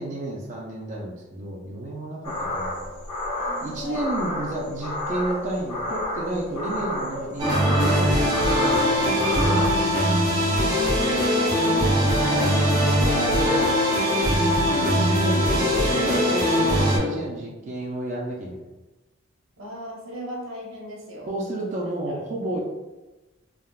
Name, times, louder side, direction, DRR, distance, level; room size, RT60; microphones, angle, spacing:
voice 1, 0.0-3.0 3.6-9.8 14.5-18.6 21.3-22.6, right 1 dB, 35° right, -4 dB, 0.4 m, -31 dB
sound 1, 2.2-9.7, left 1 dB, 85° left, 1.0 m, -31 dB
voice 2, 3.4-4.0 10.6-10.8 11.4-14.4 19.6-21.3 21.6-21.7 22.1-22.2, equal, 80° right, -3 dB, 0.8 m, -35 dB
sound 2, 7.4-17.0, equal, 20° right, 0.8 m, -21 dB
3.5 x 2.1 x 2.3 m, 1.1 s
head